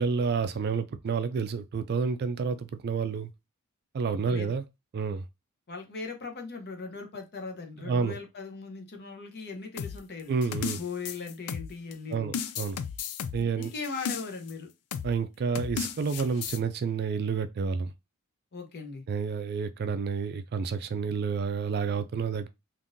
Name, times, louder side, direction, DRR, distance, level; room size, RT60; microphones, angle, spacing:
voice 1, 0.0-3.3 3.9-4.6 4.9-5.2 7.9-8.1 10.3-10.8 12.1-12.8 13.3-13.7 15.0-17.9 19.1-22.5, right 5 dB, 45° right, 0.3 m, -29 dB
voice 2, 4.0-4.5 5.7-10.4 10.8-12.4 13.4-14.7 18.5-19.0, left 4 dB, 50° left, 0.8 m, -39 dB
sound 1, 9.8-11.9 12.3-14.5 14.9-15.2 15.5-16.6, left 7 dB, 85° left, 0.4 m, -34 dB
3.6 x 2.6 x 2.5 m
head